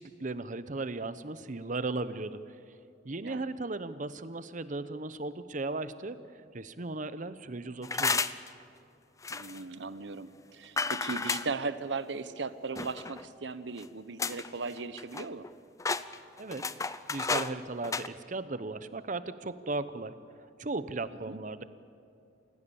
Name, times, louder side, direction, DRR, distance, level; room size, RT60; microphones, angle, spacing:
voice 1, 0.0-2.4 3.0-6.2 6.5-8.2 16.4-20.1 20.6-21.6, right 3 dB, 45° right, 13 dB, 0.9 m, -36 dB
sound 1, 7.8-8.5 9.2-9.6 10.8-11.5 12.8-13.2 13.8-13.9 14.2-14.5 14.8-15.5 15.8-17.5 17.8-18.1, left 4 dB, 20° left, 0.5 m, -32 dB
voice 2, 9.3-15.5 21.2-21.4, right 4 dB, 80° right, 13 dB, 0.9 m, -37 dB
29.0 x 16.5 x 7.1 m, 2.6 s
head